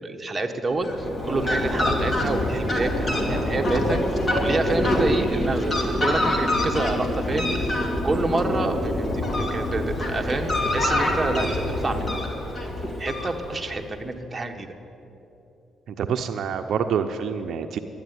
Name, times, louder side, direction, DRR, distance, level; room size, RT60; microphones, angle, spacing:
voice 1, 0.0-7.5 8.0-12.2 12.6-14.7, right 2 dB, 20° right, 3 dB, 1.3 m, -28 dB
Fowl, 0.7-13.8, left 1 dB, 25° left, 2.3 m, -25 dB
voice 2, 16.0-17.8, right 7 dB, 70° right, 7 dB, 0.6 m, -26 dB
12.5 x 10.0 x 9.5 m, 2.9 s
cardioid pair, 90°, 0 cm